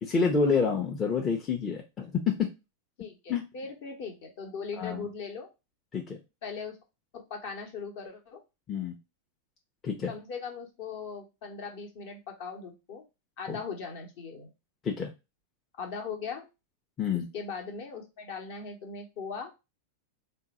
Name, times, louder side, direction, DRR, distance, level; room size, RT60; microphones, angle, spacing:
voice 1, 0.0-2.5 3.3-3.4 4.7-5.1 5.9-6.2 8.7-9.0 9.8-10.1 13.5-13.6 14.8-15.1 17.0-17.3, left 5 dB, 25° left, 1 dB, 0.6 m, -28 dB
voice 2, 3.0-5.5 6.4-6.8 7.1-8.4 10.1-13.0 13.4-14.5 15.8-16.5 17.3-19.5, left 5 dB, 50° left, 3 dB, 0.9 m, -39 dB
3.7 x 2.3 x 4.1 m, 0.26 s
figure-of-eight pair, 90°, 0 cm